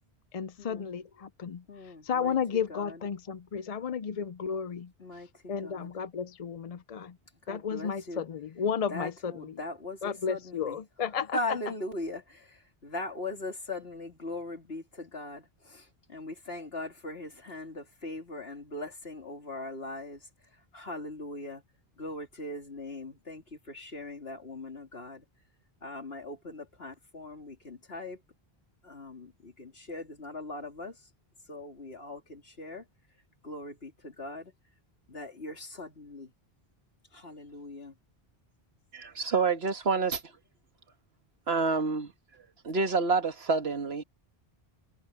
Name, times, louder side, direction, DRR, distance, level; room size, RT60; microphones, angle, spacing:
voice 1, 0.3-1.6 2.0-4.9 5.5-7.1 7.5-9.6 10.0-11.4, left 7 dB, 45° left, 0.5 m, -33 dB
voice 2, 1.7-2.4 2.7-3.0 5.0-5.3 5.6-5.9 7.5-8.2 8.9-10.8 11.3-20.2 20.7-21.6 22.0-25.2 25.8-28.2 28.8-30.9 31.5-32.8 33.4-34.5 35.1-36.3 37.1-37.9, left 2 dB, 75° left, 3.4 m, -40 dB
voice 3, 38.9-40.2 41.5-42.1 42.6-44.0, right 4 dB, 85° right, 1.7 m, -27 dB
omnidirectional pair, 1.0 m